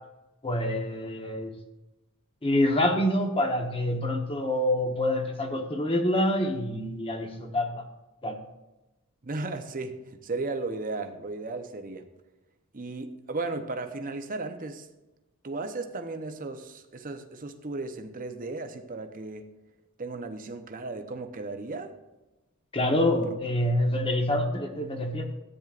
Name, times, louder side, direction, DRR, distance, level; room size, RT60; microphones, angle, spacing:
voice 1, 0.4-1.5 2.4-7.8 8.2-8.3 22.7-25.2, left 1 dB, 25° left, 4 dB, 1.1 m, -26 dB
voice 2, 9.2-12.0 12.7-14.9 15.4-19.5 20.0-22.0 23.2-23.3, right 3 dB, 40° right, 6 dB, 0.8 m, -35 dB
13.5 x 9.1 x 2.5 m, 1.0 s
head